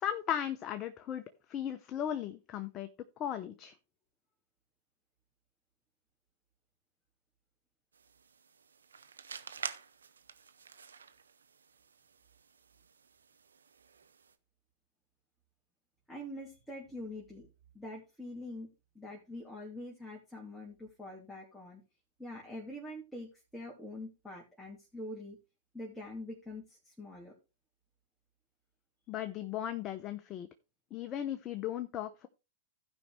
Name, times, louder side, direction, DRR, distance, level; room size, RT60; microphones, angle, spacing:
voice 1, 0.0-1.2 1.5-2.9 3.2-3.7 29.1-30.5 30.9-32.3, left 10 dB, 35° left, 9 dB, 0.8 m, -36 dB
sound 1, 7.9-14.3, right 6 dB, 80° right, 0.8 m, -48 dB
voice 2, 16.1-17.5 17.7-18.7 18.9-21.8 22.2-25.4 25.7-27.3, left 1 dB, ahead, -4 dB, 2.7 m, -45 dB
16.0 x 5.4 x 3.3 m, 0.28 s
hypercardioid pair, 105°, 0 cm